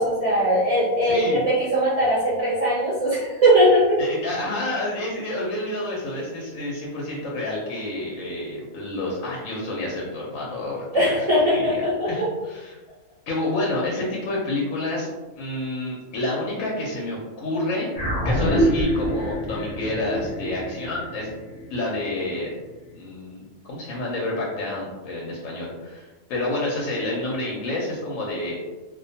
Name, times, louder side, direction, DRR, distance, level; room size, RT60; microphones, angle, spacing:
voice 1, 0.0-4.0 10.9-12.2, equal, 50° right, -9 dB, 0.4 m, -20 dB
voice 2, 1.0-1.5 4.0-11.2 11.5-11.8 12.1-12.8 13.3-15.1 15.4-17.9 18.2-21.3 21.7-22.5 22.9-28.6, left 2 dB, 70° left, -4 dB, 0.9 m, -29 dB
sound 1, 17.9-22.6, equal, 50° left, 0.5 m, -25 dB
2.4 x 2.1 x 2.6 m, 1.2 s
omnidirectional pair, 1.5 m